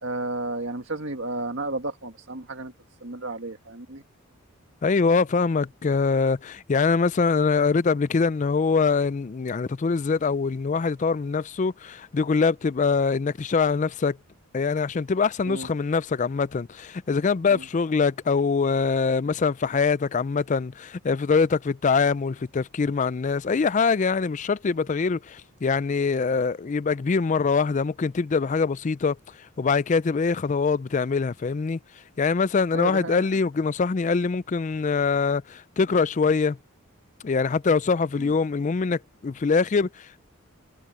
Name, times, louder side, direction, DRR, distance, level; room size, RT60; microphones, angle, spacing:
voice 1, 0.0-2.7 3.0-4.0 15.4-15.7 17.5-17.7 32.7-33.3 38.2-38.3, right 2 dB, 60° right, 1.9 m, -32 dB
voice 2, 4.8-14.2 14.5-29.2 29.6-31.8 32.2-36.6 37.2-40.2, left 4 dB, 35° left, 0.4 m, -23 dB
head